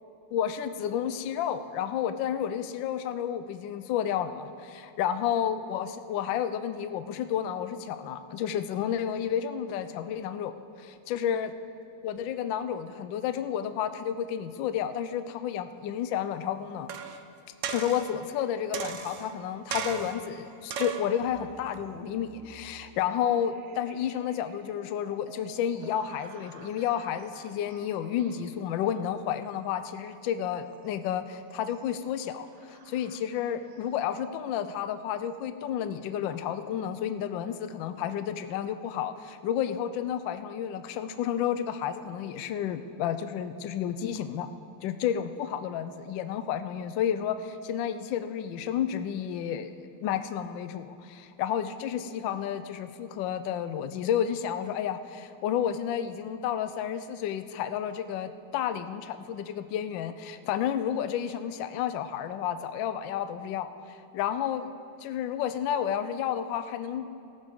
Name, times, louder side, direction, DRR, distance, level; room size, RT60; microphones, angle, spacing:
voice 1, 0.3-10.5 10.8-11.5 12.0-16.9 17.7-44.5 44.8-49.8 50.0-64.7 65.0-67.1, left 9 dB, 75° left, 10 dB, 1.3 m, -31 dB
sound 1, 16.9-17.2 17.6-18.2 18.7-19.3 19.7-20.3 20.7-21.1 21.7-21.8, right 7 dB, 90° right, 0.6 m, -35 dB
sound 2, 19.7-34.4, right 5 dB, 55° right, 0.8 m, -54 dB
18.0 x 14.5 x 3.6 m, 2.7 s
omnidirectional pair, 2.2 m